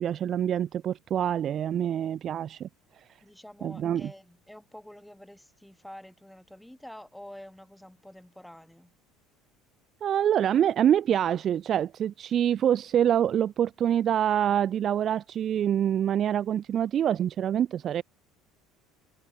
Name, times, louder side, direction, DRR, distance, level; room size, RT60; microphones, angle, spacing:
voice 1, 0.0-2.7 3.6-4.1 10.0-18.0, right 10 dB, 30° right, 0.3 m, -25 dB
voice 2, 3.2-8.9, left 1 dB, ahead, 1.9 m, -48 dB
cardioid pair, 180°, 0 cm